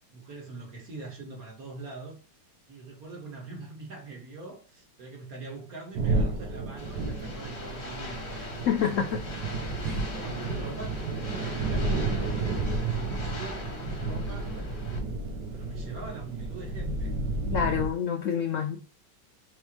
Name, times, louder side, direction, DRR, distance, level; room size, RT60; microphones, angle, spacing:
voice 1, 0.1-2.2 2.7-8.4 9.7-14.8 15.5-17.1, right 3 dB, 50° right, 1.8 m, -43 dB
sound 1, 5.9-17.9, right 3 dB, 75° right, 1.4 m, -31 dB
sound 2, 6.8-15.0, left 2 dB, 40° left, 1.4 m, -41 dB
voice 2, 8.6-9.2 9.8-9.9 17.5-18.8, left 8 dB, 80° left, 0.7 m, -27 dB
4.4 x 3.4 x 2.9 m
omnidirectional pair, 2.0 m